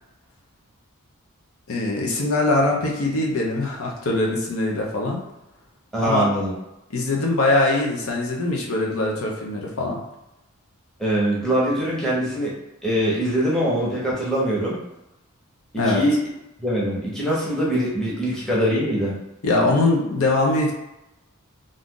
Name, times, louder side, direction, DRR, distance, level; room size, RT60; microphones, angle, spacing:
voice 1, 1.7-5.2 6.0-6.3 6.9-10.0 15.8-16.0 19.4-20.7, left 2 dB, 70° left, -2 dB, 0.7 m, -22 dB
voice 2, 5.9-6.5 11.0-12.5 12.8-14.8 15.7-16.2 16.6-19.2, equal, 5° left, -7 dB, 0.8 m, -23 dB
2.6 x 2.4 x 3.7 m, 0.91 s
head